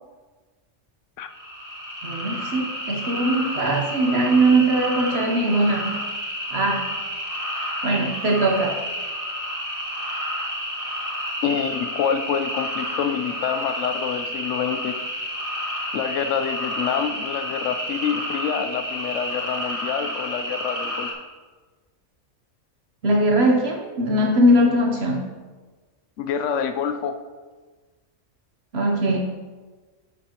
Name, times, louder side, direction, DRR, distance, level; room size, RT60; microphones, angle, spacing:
sound 1, 1.3-21.1, equal, 30° right, 1.8 m, -30 dB
voice 1, 2.0-6.0 6.5-6.9 7.8-8.8 23.0-25.3 28.7-29.2, right 1 dB, 60° right, 1 dB, 1.1 m, -20 dB
voice 2, 11.4-14.9 15.9-21.1 26.2-27.2, left 7 dB, 80° left, 8 dB, 1.0 m, -27 dB
10.5 x 7.4 x 3.0 m, 1.3 s
omnidirectional pair, 1.2 m